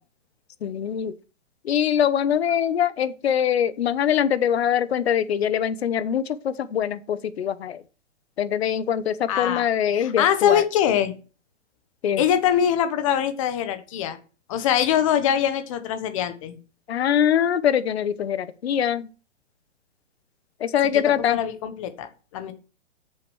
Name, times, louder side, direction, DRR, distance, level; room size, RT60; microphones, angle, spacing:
voice 1, 0.6-1.1 1.6-7.8 8.4-10.6 12.0-12.2 16.9-19.1 20.6-21.4, left 9 dB, 55° left, 1.1 m, -23 dB
voice 2, 9.3-9.7 9.9-11.1 12.2-14.2 14.5-16.6 20.9-22.5, left 9 dB, 25° left, 1.2 m, -23 dB
8.7 x 6.9 x 6.2 m
hypercardioid pair, 170°, 37 cm